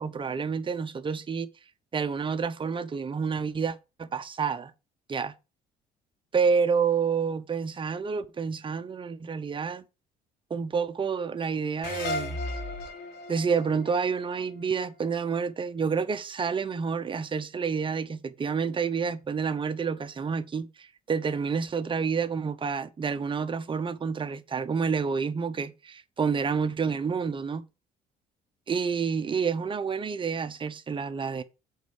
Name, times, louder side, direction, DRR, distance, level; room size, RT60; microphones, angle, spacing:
voice 1, 0.0-1.5 1.9-4.7 5.1-5.3 6.3-9.8 10.5-12.4 13.3-27.6 28.7-31.4, right 5 dB, 30° right, 1.0 m, -29 dB
sound 1, 11.8-15.1, left 2 dB, 75° left, 3.3 m, -36 dB
8.2 x 4.5 x 6.6 m
cardioid pair, 110°, 17 cm